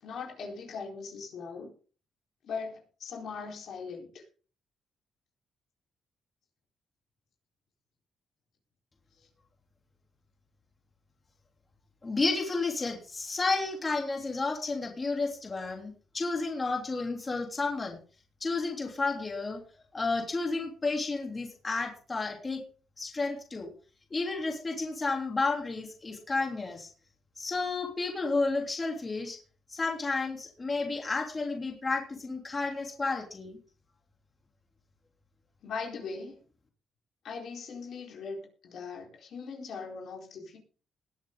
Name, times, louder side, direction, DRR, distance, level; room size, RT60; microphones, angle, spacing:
voice 1, 0.0-1.7 2.4-4.2 35.6-36.4 37.2-40.6, left 5 dB, 70° left, 0 dB, 4.2 m, -40 dB
voice 2, 12.0-18.0 18.4-19.6 19.9-22.6 23.0-23.7 24.1-26.9 27.4-29.4 29.7-33.6, left 3 dB, 30° left, 1 dB, 3.3 m, -31 dB
20.5 x 7.5 x 3.8 m, 0.39 s
cardioid pair, 85°, 0 cm